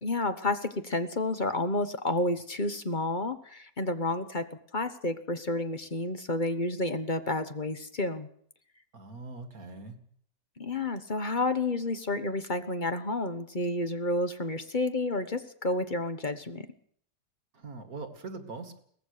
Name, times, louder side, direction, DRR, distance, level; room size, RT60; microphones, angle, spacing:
voice 1, 0.0-8.3 10.6-16.7, left 2 dB, 30° left, 10 dB, 1.2 m, -30 dB
voice 2, 8.9-10.0 17.5-18.8, right 3 dB, 55° right, 7 dB, 2.6 m, -42 dB
22.5 x 18.5 x 6.8 m, 0.62 s
omnidirectional pair, 1.8 m